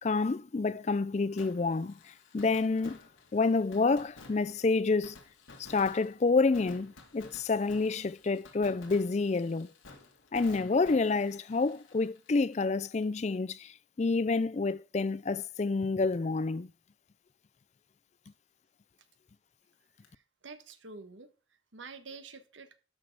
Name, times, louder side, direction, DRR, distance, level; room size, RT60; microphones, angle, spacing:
voice 1, 0.0-3.0 3.3-5.2 5.6-9.7 10.3-16.7, left 3 dB, 35° left, 0.4 m, -28 dB
Fireworks, 1.4-13.0 13.3-13.4 20.0-20.1, left 3 dB, 85° left, 2.6 m, -54 dB
voice 2, 20.1-22.8, right 4 dB, 75° right, 1.4 m, -48 dB
12.5 x 6.3 x 4.8 m
head